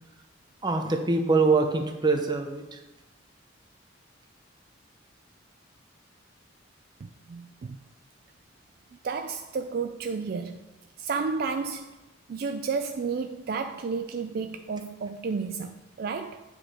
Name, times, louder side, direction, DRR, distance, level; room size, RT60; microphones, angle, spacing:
voice 1, 0.6-2.8, right 3 dB, 20° right, 0.7 m, -24 dB
voice 2, 7.0-7.8 9.0-10.6 11.0-11.9 12.3-16.4, right 5 dB, 50° right, 0.3 m, -32 dB
8.4 x 5.1 x 4.3 m
head